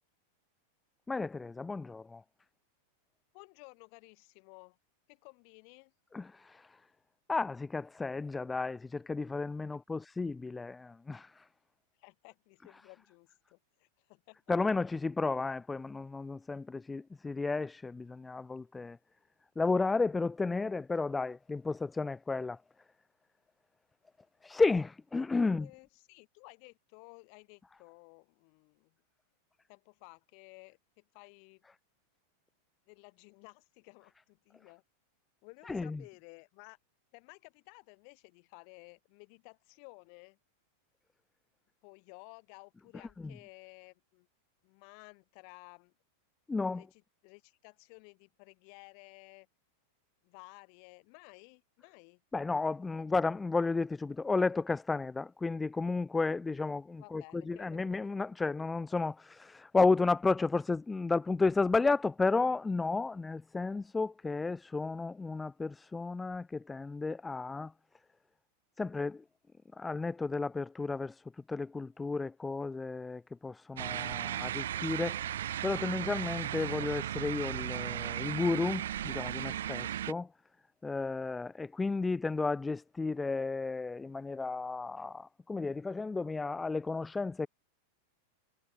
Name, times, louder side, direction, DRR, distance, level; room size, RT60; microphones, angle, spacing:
voice 1, 1.1-2.2 6.1-6.8 7.3-11.5 14.5-19.0 19.6-22.6 24.4-25.7 35.6-36.0 43.2-43.3 46.5-46.8 52.3-67.7 68.8-69.2 69.7-75.4 75.6-80.3 80.8-87.5, left 3 dB, 10° left, 0.5 m, -33 dB
voice 2, 3.3-4.8 5.1-5.9 9.9-10.0 12.0-14.5 25.4-29.0 29.7-31.6 32.9-34.8 35.4-36.8 37.1-40.4 41.8-44.3 44.6-45.9 46.7-49.5 50.2-52.2 52.8-53.1 57.0-58.0, left 40 dB or more, 45° left, 2.4 m, -55 dB
sound 1, 73.8-80.1, right 11 dB, 60° right, 0.4 m, -36 dB
figure-of-eight pair, 90°, 0 cm